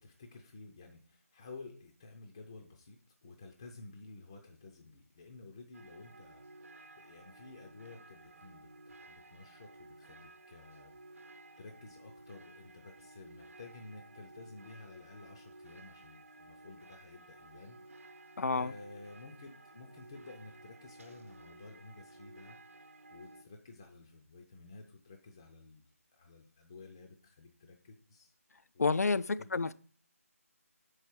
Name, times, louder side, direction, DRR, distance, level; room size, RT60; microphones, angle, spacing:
voice 1, 0.0-11.0 11.6-18.1 18.5-28.4 28.7-29.0 29.4-29.7, left 3 dB, 20° left, 0.4 m, -53 dB
sound 1, 5.7-23.4, right 2 dB, 60° right, 0.9 m, -55 dB
voice 2, 18.4-18.7 28.8-29.7, left 4 dB, 85° left, 0.4 m, -29 dB
6.1 x 4.7 x 4.4 m
figure-of-eight pair, 165°, 8 cm